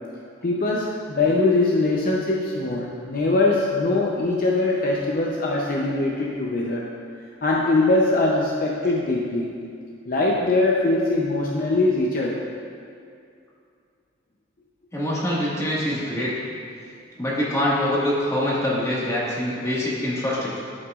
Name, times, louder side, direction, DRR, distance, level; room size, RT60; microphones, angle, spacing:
voice 1, 0.4-6.8 7.4-9.6 10.1-12.4, left 2 dB, 50° left, -3 dB, 0.6 m, -22 dB
voice 2, 14.9-16.3 17.2-20.6, left 1 dB, 15° left, -7 dB, 1.6 m, -24 dB
12.5 x 5.7 x 2.4 m, 2.4 s
head